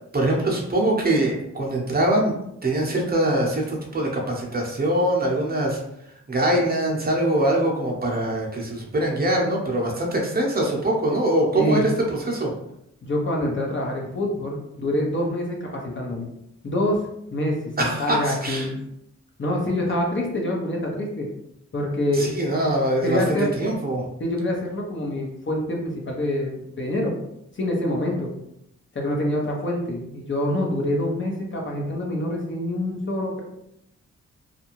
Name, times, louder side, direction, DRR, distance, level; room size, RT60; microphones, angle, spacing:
voice 1, 0.1-2.3 2.6-5.8 6.3-11.9 12.2-12.5 17.8-18.7 22.1-24.0, right 1 dB, 30° right, -2 dB, 0.8 m, -23 dB
voice 2, 13.0-16.3 16.6-17.0 17.3-18.8 19.4-21.3 21.7-22.3 23.0-23.5 24.2-27.1 27.5-28.3 28.9-33.4, left 1 dB, 40° left, -1 dB, 0.8 m, -26 dB
2.5 x 2.2 x 3.0 m, 0.78 s
cardioid pair, 60°, 31 cm